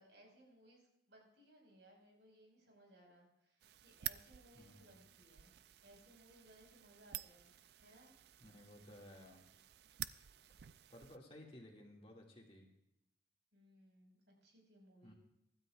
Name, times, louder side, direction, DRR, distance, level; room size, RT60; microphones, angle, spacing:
voice 1, 0.0-5.5 5.8-7.5 7.8-8.1 13.5-15.1, right 1 dB, 85° right, 0 dB, 5.3 m, -64 dB
sound 1, 3.6-11.2, right 13 dB, 65° right, 0.4 m, -51 dB
voice 2, 4.5-5.0 8.4-9.4 10.9-12.7 15.0-15.1, left 1 dB, 30° left, -1 dB, 2.2 m, -57 dB
24.5 x 12.5 x 2.5 m, 0.81 s
head